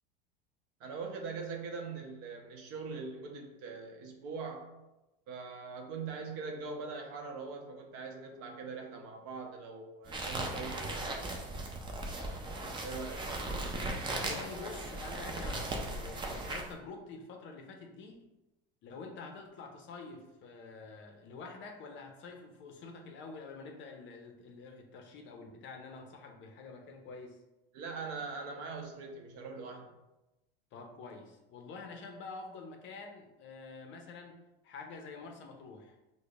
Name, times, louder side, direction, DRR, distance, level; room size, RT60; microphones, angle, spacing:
voice 1, 0.8-4.7 5.3-11.2 12.8-13.2 27.7-29.9, right 4 dB, 50° right, 3 dB, 0.7 m, -42 dB
sound 1, 10.1-16.7, right 2 dB, 15° right, 0.4 m, -37 dB
voice 2, 14.1-18.2 18.8-27.4 30.7-36.0, left 4 dB, 40° left, 4 dB, 0.5 m, -47 dB
4.9 x 2.1 x 2.3 m, 0.99 s
hypercardioid pair, 105°, 31 cm